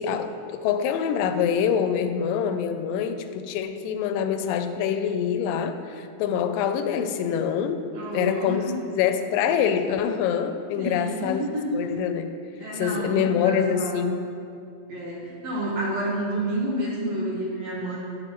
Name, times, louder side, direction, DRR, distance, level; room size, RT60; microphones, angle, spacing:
voice 1, 0.0-7.8 8.1-8.6 8.9-11.4 11.7-12.3 12.8-14.2, left 8 dB, 85° left, 8 dB, 2.2 m, -25 dB
voice 2, 7.9-8.7 10.8-11.8 12.6-14.1 14.9-18.0, right 1 dB, 60° right, -5 dB, 2.1 m, -29 dB
9.3 x 9.2 x 3.0 m, 2.5 s
omnidirectional pair, 4.0 m